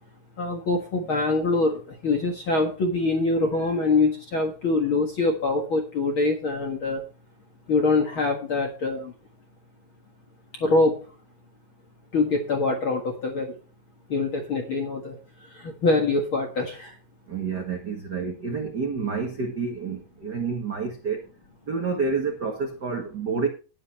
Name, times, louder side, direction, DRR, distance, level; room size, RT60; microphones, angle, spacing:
voice 1, 0.4-7.0 7.7-9.1 10.5-11.1 12.1-13.6 14.1-17.0, left 3 dB, 50° left, 1.5 m, -24 dB
voice 2, 17.3-21.2 21.7-23.5, right 5 dB, 85° right, 0.9 m, -29 dB
11.0 x 10.5 x 4.3 m
omnidirectional pair, 4.6 m